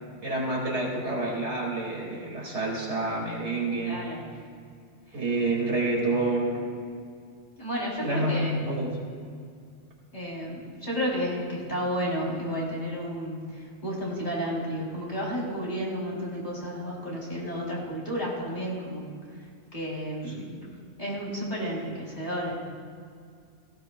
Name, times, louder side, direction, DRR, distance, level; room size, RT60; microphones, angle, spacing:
voice 1, 0.2-4.1 5.1-6.7 8.0-9.0 20.3-20.9, right 2 dB, 70° right, -2 dB, 2.6 m, -28 dB
voice 2, 3.8-4.3 7.6-8.6 10.1-19.1 19.7-20.5 21.0-22.6, equal, 40° left, -5 dB, 3.4 m, -32 dB
17.5 x 15.5 x 2.2 m, 2.2 s
omnidirectional pair, 1.2 m